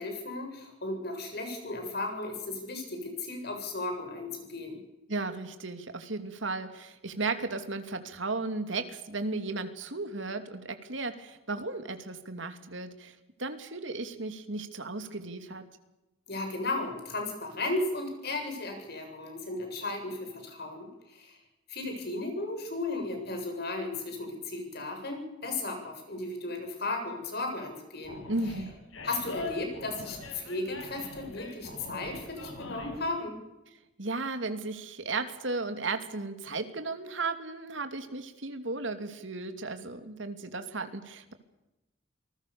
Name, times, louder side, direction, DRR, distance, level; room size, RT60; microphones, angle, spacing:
voice 1, 0.0-4.8 16.3-21.4 21.7-28.2 29.0-33.4, left 2 dB, 55° left, 4 dB, 7.5 m, -35 dB
voice 2, 5.1-15.6 28.3-28.8 34.0-41.3, right 3 dB, 70° right, 8 dB, 2.7 m, -35 dB
Animal, 28.0-33.1, left 2 dB, 85° left, 6.2 m, -42 dB
28.0 x 19.5 x 7.0 m, 0.97 s
head